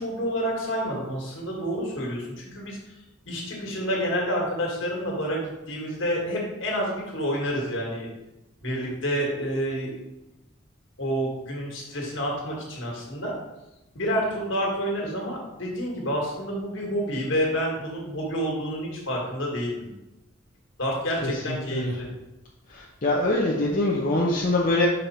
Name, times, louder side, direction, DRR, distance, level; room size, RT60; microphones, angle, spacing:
voice 1, 0.0-2.8 3.3-8.1 8.6-9.9 11.0-13.3 13.9-19.9 20.8-22.1, equal, 65° left, -2 dB, 1.7 m, -29 dB
voice 2, 22.7-24.9, left 2 dB, 40° left, -4 dB, 0.7 m, -23 dB
5.4 x 4.5 x 4.3 m, 0.97 s
head